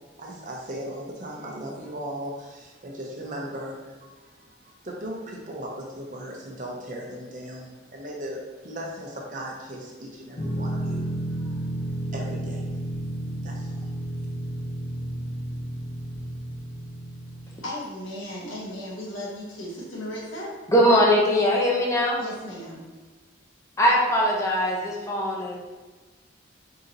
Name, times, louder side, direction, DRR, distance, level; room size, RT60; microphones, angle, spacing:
voice 1, 0.2-11.6 12.1-12.7 13.4-13.9, right 1 dB, 40° right, -2 dB, 0.7 m, -37 dB
sound 1, 10.4-17.6, right 1 dB, 70° left, 0.8 m, -32 dB
voice 2, 17.6-20.5 22.2-22.9, left 1 dB, 90° left, -4 dB, 1.3 m, -36 dB
voice 3, 20.7-22.2 23.8-25.6, equal, 15° left, -4 dB, 0.7 m, -21 dB
3.9 x 2.8 x 3.9 m, 1.3 s
head